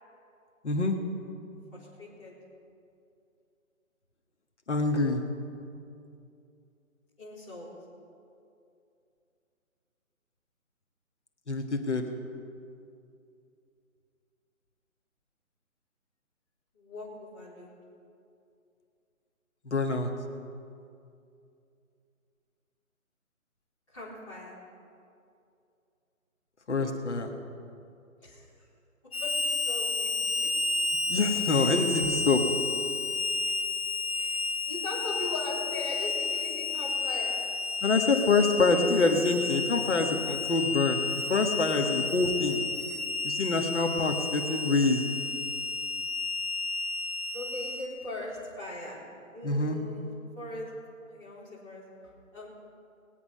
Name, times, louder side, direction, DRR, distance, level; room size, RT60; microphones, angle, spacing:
voice 1, 0.6-0.9 4.7-5.2 11.5-12.0 19.7-20.1 26.7-27.3 31.1-32.4 37.8-41.0 41.3-42.6 43.2-45.0 49.4-49.8, left 3 dB, 55° left, 4 dB, 1.5 m, -26 dB
voice 2, 1.7-2.3 7.2-7.7 16.8-17.7 23.9-24.6 28.2-28.4 29.2-30.1 31.5-32.1 34.1-37.4 47.3-49.0 49.3-50.7 51.1-52.5, left 2 dB, 20° left, -9 dB, 3.8 m, -40 dB
Harmonica, 29.1-47.9, left 3 dB, 90° left, 1.8 m, -31 dB
20.5 x 8.4 x 5.6 m, 2.6 s
hypercardioid pair, 175°, 42 cm